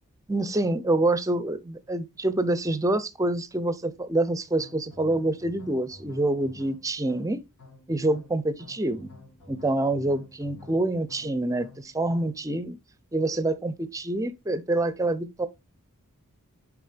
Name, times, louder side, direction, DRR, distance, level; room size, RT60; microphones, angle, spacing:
voice 1, 0.3-7.4 7.9-9.1 9.5-12.8 13.1-15.5, right 2 dB, 15° right, 0.5 m, -26 dB
sound 1, 4.6-12.5, left 2 dB, 90° left, 2.1 m, -50 dB
6.5 x 5.1 x 3.3 m
head